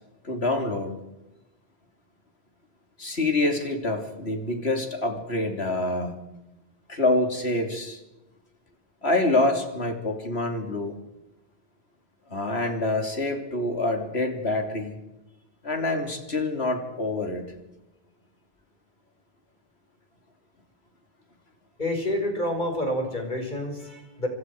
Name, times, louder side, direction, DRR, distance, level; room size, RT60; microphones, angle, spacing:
voice 1, 0.2-0.9 3.0-6.1 6.9-8.0 9.0-11.0 12.3-15.0 15.6-17.4, left 2 dB, 85° left, 4 dB, 3.5 m, -26 dB
voice 2, 21.8-24.3, left 1 dB, 50° left, 3 dB, 5.5 m, -28 dB
29.0 x 25.5 x 4.9 m, 0.98 s
omnidirectional pair, 1.1 m